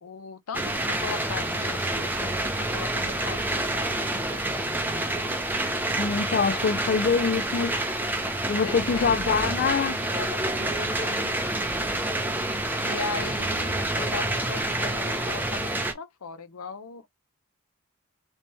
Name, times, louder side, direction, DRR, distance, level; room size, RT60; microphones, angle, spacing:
voice 1, 0.0-2.4 2.7-4.0 4.3-4.7 8.6-9.9 10.1-11.4 12.8-17.1, left 5 dB, 90° left, 0.6 m, -38 dB
sound 1, 0.5-15.9, right 1 dB, 10° right, 0.5 m, -28 dB
voice 2, 6.0-7.8 8.5-9.9, left 5 dB, 45° left, 0.4 m, -24 dB
3.3 x 2.9 x 3.0 m
head